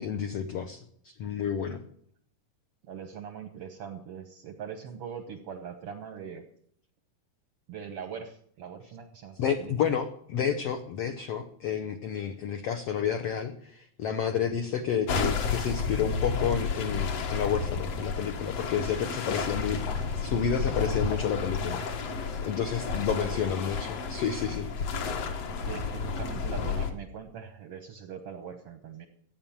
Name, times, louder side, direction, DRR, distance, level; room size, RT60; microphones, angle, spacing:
voice 1, 0.0-1.8 9.4-21.8 22.4-24.7, left 8 dB, 80° left, 7 dB, 1.3 m, -30 dB
voice 2, 2.8-6.4 7.7-10.0 14.7-14.8 23.1-23.4 25.6-29.1, right 7 dB, 75° right, 7 dB, 1.4 m, -41 dB
sound 1, 15.1-26.9, left 5 dB, 55° left, 2.1 m, -31 dB
14.5 x 9.1 x 7.2 m, 0.65 s
omnidirectional pair, 4.0 m